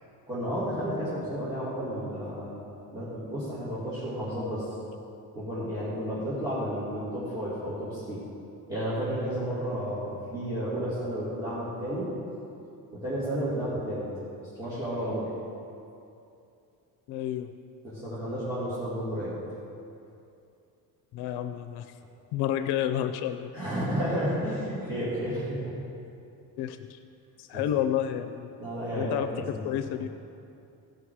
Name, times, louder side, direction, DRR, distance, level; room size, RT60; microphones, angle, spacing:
voice 1, 0.3-4.7 5.3-8.2 8.7-12.1 12.9-14.1 14.4-15.3 17.8-19.3 22.0-22.1 23.5-25.7 27.5-27.6 28.6-29.1 29.5-29.6, equal, 10° right, -12 dB, 2.6 m, -32 dB
voice 2, 17.1-17.5 21.1-21.9 22.3-23.5 26.6-27.0 27.4-28.5 28.9-30.1, left 11 dB, 90° left, 9 dB, 0.6 m, -30 dB
16.0 x 5.8 x 4.8 m, 2.6 s
cardioid pair, 170°, 38 cm